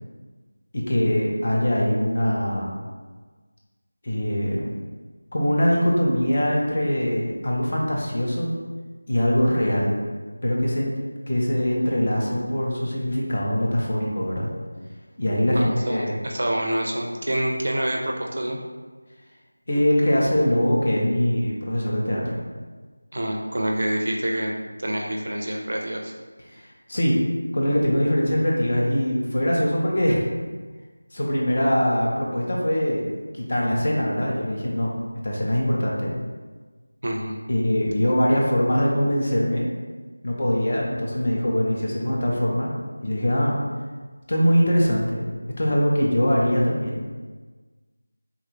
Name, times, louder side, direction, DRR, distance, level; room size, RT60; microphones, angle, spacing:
voice 1, 0.7-2.7 4.0-4.7 5.3-8.5 9.1-9.9 10.4-10.9 11.3-14.5 15.2-16.2 19.7-22.4 26.5-27.2 27.5-30.2 31.1-35.0 35.2-36.1 37.5-39.7 40.2-43.6 44.3-45.3 45.6-47.1, equal, 30° left, -3 dB, 0.4 m, -22 dB
voice 2, 15.5-18.6 23.1-24.5 24.8-26.1 37.0-37.4, right 1 dB, 50° right, 0 dB, 0.4 m, -27 dB
3.3 x 2.2 x 3.1 m, 1.4 s
figure-of-eight pair, 180°, 0 cm